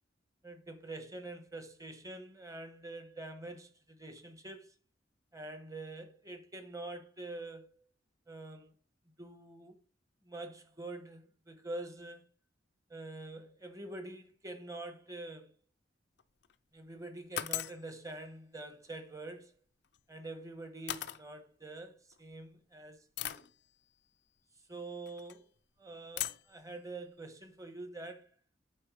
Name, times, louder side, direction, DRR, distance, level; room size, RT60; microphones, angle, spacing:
voice 1, 0.4-4.7 5.3-7.9 8.3-8.7 9.2-9.7 10.2-12.2 12.9-15.5 16.7-19.5 20.1-23.5 24.7-25.5 25.8-28.3, right 2 dB, 20° right, 1.1 m, -46 dB
sound 1, 16.2-16.5 17.4-17.8 19.8-20.0 20.9-21.2 22.1-22.2 23.2-23.5 25.1-25.4 26.2-26.5, left 12 dB, 65° left, 0.5 m, -38 dB
8.8 x 4.2 x 4.7 m
head